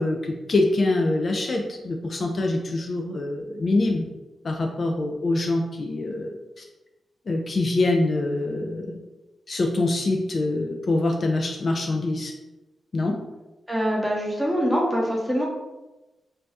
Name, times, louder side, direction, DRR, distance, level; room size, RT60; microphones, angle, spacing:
voice 1, 0.0-4.1 4.4-6.6 7.3-9.0 9.5-12.3 12.9-13.2, left 2 dB, 50° left, 1 dB, 0.3 m, -25 dB
voice 2, 13.7-15.5, equal, ahead, -2 dB, 0.8 m, -24 dB
2.7 x 2.2 x 3.4 m, 1.1 s
cardioid pair, 80°, 0 cm